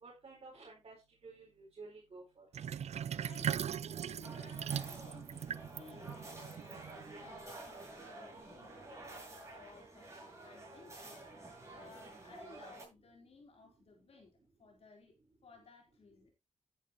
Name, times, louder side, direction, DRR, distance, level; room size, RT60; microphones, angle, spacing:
voice 1, 0.0-1.0 1.2-2.4, right 3 dB, 55° right, -3 dB, 4.6 m, -52 dB
Sink (filling or washing), 2.5-7.3, right 8 dB, 75° right, 0.5 m, -39 dB
voice 2, 3.2-11.3 11.7-15.2 15.4-16.3, left 4 dB, 65° left, 1 dB, 4.1 m, -59 dB
sound 1, 4.2-12.8, right 2 dB, 25° right, 7.4 m, -50 dB
11.0 x 10.5 x 3.1 m, 0.25 s
cardioid pair, 85°, 11 cm